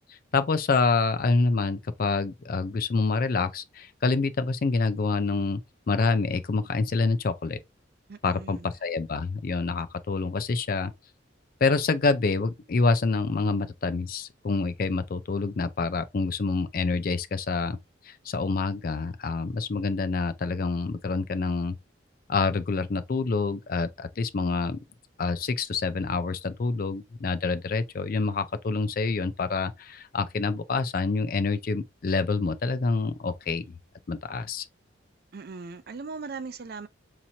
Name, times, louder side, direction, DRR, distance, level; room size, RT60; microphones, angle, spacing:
voice 1, 0.3-5.6 5.9-7.6 8.2-10.9 11.6-17.8 18.1-21.7 22.3-24.8 25.2-33.7 34.1-34.6, left 4 dB, 45° left, 0.4 m, -27 dB
voice 2, 8.1-8.7 35.3-36.9, right 4 dB, 50° right, 0.4 m, -39 dB
4.2 x 2.9 x 2.7 m
head